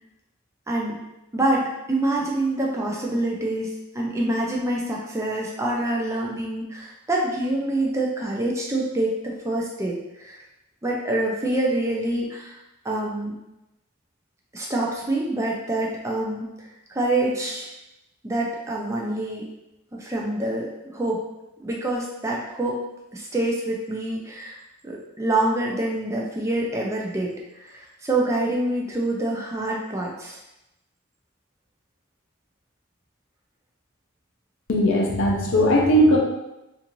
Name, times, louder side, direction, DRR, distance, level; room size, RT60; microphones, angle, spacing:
voice 1, 0.7-1.0 1.3-10.4 10.8-12.6 12.8-13.3 14.5-17.7 18.2-19.5 19.9-21.2 21.6-22.8 23.1-24.6 24.8-30.4, right 1 dB, 15° right, -2 dB, 0.4 m, -26 dB
voice 2, 34.7-36.2, equal, 60° left, -1 dB, 0.6 m, -18 dB
2.5 x 2.4 x 2.9 m, 0.93 s
head